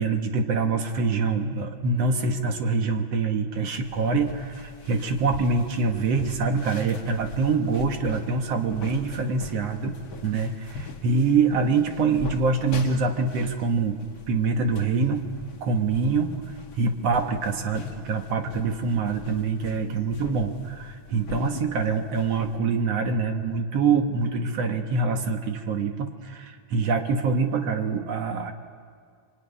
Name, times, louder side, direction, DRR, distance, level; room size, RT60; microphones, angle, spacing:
voice 1, 0.0-10.0 10.2-14.0 14.3-15.2 15.6-16.3 16.8-28.5, right 4 dB, 55° right, 5 dB, 2.2 m, -25 dB
sound 1, 3.8-22.6, left 3 dB, 50° left, 1.3 m, -42 dB
24.5 x 23.5 x 9.8 m, 2.1 s
omnidirectional pair, 3.7 m